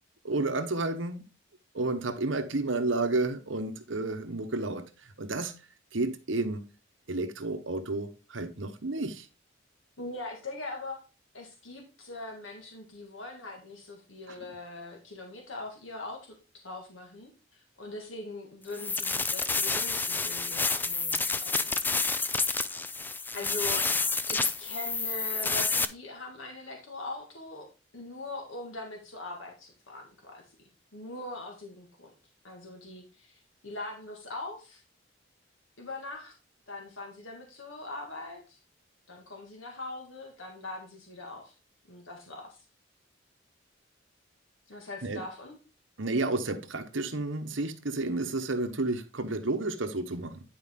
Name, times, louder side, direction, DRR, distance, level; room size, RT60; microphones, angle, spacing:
voice 1, 0.2-1.2 1.7-4.8 5.2-5.6 5.9-6.6 7.1-9.2 14.3-14.4 45.0-45.2 46.0-50.4, right 2 dB, 75° right, 1.2 m, -31 dB
voice 2, 10.0-11.0 11.3-16.3 16.6-21.9 23.3-23.9 24.3-27.7 27.9-30.4 30.9-32.1 32.4-34.8 35.8-36.3 36.7-38.6 39.1-41.5 41.9-42.7 44.7-45.6, left 2 dB, 85° left, 1.7 m, -41 dB
sound 1, 18.7-25.9, left 4 dB, 10° left, 0.3 m, -29 dB
10.5 x 4.9 x 3.7 m
head